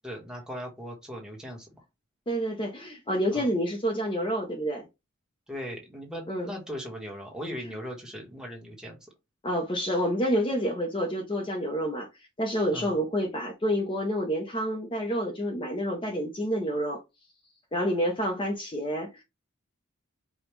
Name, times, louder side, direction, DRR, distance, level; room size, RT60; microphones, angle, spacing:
voice 1, 0.0-1.7 3.3-3.5 5.5-9.1 12.7-12.9, equal, 5° right, 1.1 m, -39 dB
voice 2, 2.3-4.9 6.3-6.5 9.4-12.1 12.4-17.0 17.7-19.2, equal, 25° left, 0.7 m, -28 dB
5.1 x 2.3 x 3.1 m
head